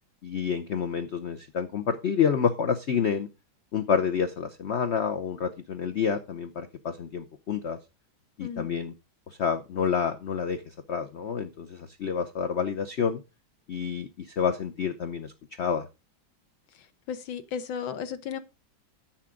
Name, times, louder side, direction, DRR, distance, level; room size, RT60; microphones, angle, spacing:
voice 1, 0.2-3.3 3.7-7.8 8.4-8.9 9.3-13.2 13.7-15.3 15.6-15.9, left 7 dB, 60° left, 0.7 m, -28 dB
voice 2, 17.1-18.4, left 7 dB, 80° left, 1.7 m, -34 dB
10.5 x 7.3 x 3.7 m
omnidirectional pair, 2.1 m